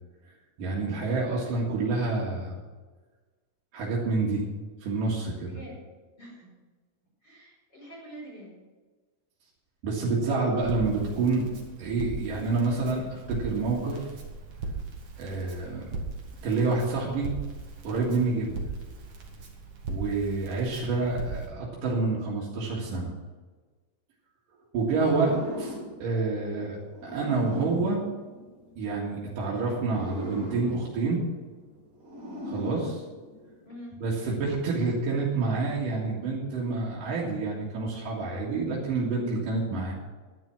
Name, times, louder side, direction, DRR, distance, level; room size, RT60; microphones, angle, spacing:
voice 1, 0.6-2.6 3.7-4.4 4.8-5.6 9.8-11.5 11.8-14.1 15.2-15.9 16.4-17.3 17.8-18.6 19.9-23.1 24.7-28.1 28.8-31.3 32.5-33.0 34.0-39.9, right 3 dB, 90° right, -5 dB, 3.6 m, -28 dB
voice 2, 5.4-5.8 6.2-6.5 7.2-8.5 33.6-34.0, equal, 30° left, -3 dB, 5.7 m, -45 dB
Crackle, 10.6-21.5, right 3 dB, 50° right, 2.6 m, -38 dB
sound 1, 24.9-29.0 29.7-33.7, equal, 30° right, 2.0 m, -39 dB
11.0 x 10.5 x 6.0 m, 1.3 s
omnidirectional pair, 3.7 m